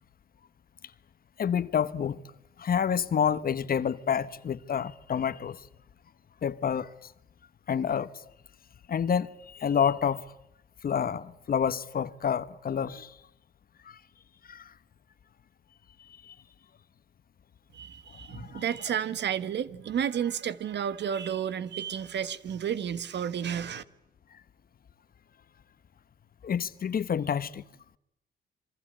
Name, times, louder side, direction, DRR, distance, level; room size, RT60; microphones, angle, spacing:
voice 1, 1.4-2.2 2.6-5.6 6.4-7.1 7.7-8.1 8.9-10.2 10.8-13.1 13.8-14.0 14.5-14.7 16.2-16.3 18.3-18.6 26.4-27.6, left 8 dB, 45° left, 1.2 m, -28 dB
voice 2, 17.7-23.8, right 8 dB, 60° right, 1.5 m, -31 dB
27.0 x 24.5 x 8.9 m
cardioid pair, 90°, 20 cm